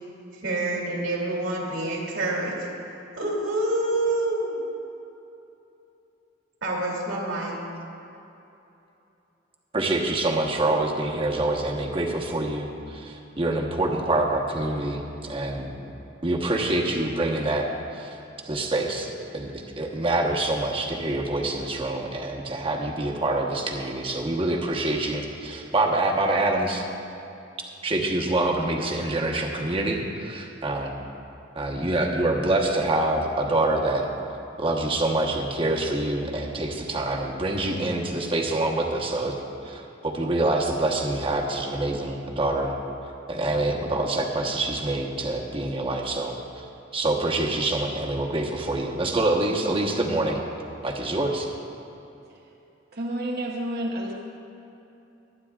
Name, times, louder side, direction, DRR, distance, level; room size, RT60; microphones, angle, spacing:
voice 1, 0.3-2.7 3.2-4.6 6.6-7.6, right 2 dB, 85° right, -2 dB, 2.6 m, -27 dB
voice 2, 9.7-15.7 16.2-17.7 17.9-18.2 18.5-19.1 19.3-26.8 27.8-30.9 31.5-34.1 34.6-39.3 39.6-42.8 43.3-46.3 46.9-50.4 50.8-51.5, right 2 dB, 30° right, 0 dB, 1.1 m, -26 dB
voice 3, 52.9-54.1, right 1 dB, 60° right, -2 dB, 0.9 m, -30 dB
23.0 x 9.3 x 2.4 m, 2.9 s
head